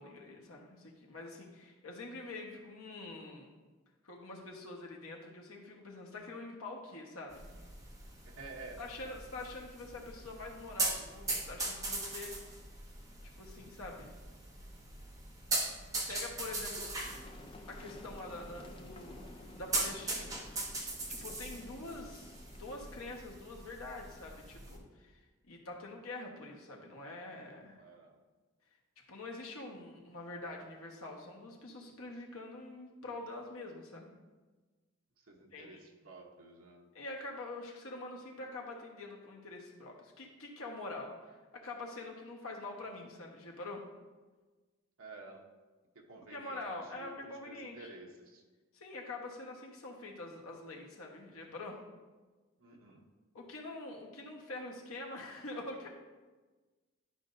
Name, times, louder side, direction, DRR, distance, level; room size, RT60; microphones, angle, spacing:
voice 1, 0.0-3.5 4.0-7.4 8.8-12.3 13.2-14.1 16.1-16.9 17.7-20.4 21.1-22.3 22.6-27.8 29.1-34.1 35.5-35.8 36.9-43.9 46.3-47.9 48.7-51.8 53.3-55.9, left 2 dB, 85° left, 0 dB, 1.3 m, -45 dB
sound 1, 7.3-24.8, right 2 dB, 15° right, 0.9 m, -40 dB
voice 2, 8.2-8.8 16.8-16.9 27.8-28.2 35.2-36.9 45.0-45.5 45.9-48.4 52.6-53.0, right 3 dB, 80° right, 0 dB, 1.0 m, -52 dB
sound 2, 17.0-23.2, left 2 dB, 25° left, 0.4 m, -54 dB
11.5 x 5.2 x 2.6 m, 1.3 s
head